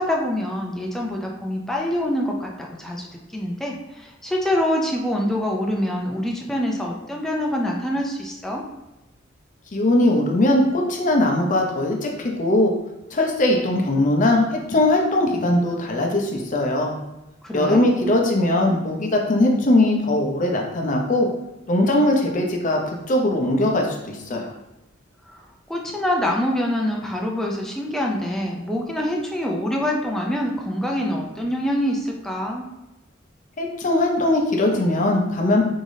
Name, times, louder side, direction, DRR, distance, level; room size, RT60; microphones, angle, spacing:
voice 1, 0.0-8.6 17.4-17.8 25.3-25.4 25.7-32.7, left 1 dB, ahead, -1 dB, 0.4 m, -25 dB
voice 2, 9.7-12.7 13.1-16.9 17.5-21.3 21.7-24.5 33.6-35.6, left 1 dB, 40° left, 1 dB, 0.6 m, -20 dB
3.6 x 3.3 x 2.6 m, 0.95 s
head